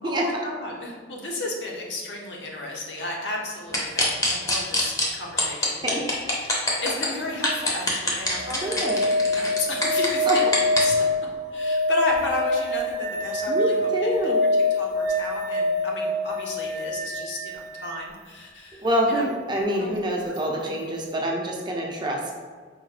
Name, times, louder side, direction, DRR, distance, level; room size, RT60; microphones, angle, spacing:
voice 1, 0.0-6.0 6.3-10.3 10.8-11.0 11.5-14.3 14.7-19.3 19.7-20.0 20.2-20.7, left 2 dB, 65° left, -1 dB, 0.7 m, -33 dB
sound 1, 3.7-5.0 5.4-7.1 7.4-10.8, left 2 dB, 20° left, 0.6 m, -23 dB
sound 2, 8.2-18.0 20.3-20.4, left 2 dB, 65° right, 0.6 m, -25 dB
voice 2, 8.6-9.0 10.3-10.4 13.5-14.4 18.8-22.3, equal, 25° right, -1 dB, 0.5 m, -26 dB
4.5 x 2.1 x 3.2 m, 1.5 s
head